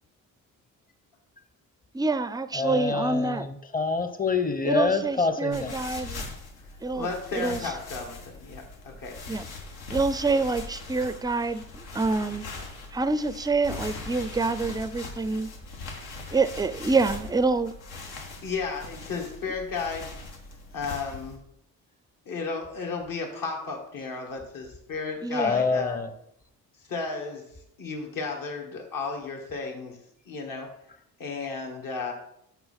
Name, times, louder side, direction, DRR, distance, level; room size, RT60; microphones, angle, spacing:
voice 1, 1.9-3.5 4.6-6.3 6.8-7.1 7.3-7.6 9.3-9.5 9.9-12.5 12.9-15.5 16.3-17.7 25.2-25.7, right 3 dB, 10° right, 0.4 m, -26 dB
voice 2, 2.6-5.8 25.4-26.1, left 4 dB, 25° left, 0.9 m, -26 dB
sound 1, 5.5-21.4, left 3 dB, 75° left, 1.5 m, -41 dB
voice 3, 6.9-9.2 18.4-20.1 20.7-21.4 22.3-26.0 26.9-27.5 27.8-30.0 30.3-30.7 31.2-32.1, left 4 dB, 60° left, 2.0 m, -33 dB
5.8 x 4.5 x 5.7 m
supercardioid pair, 65°, 38 cm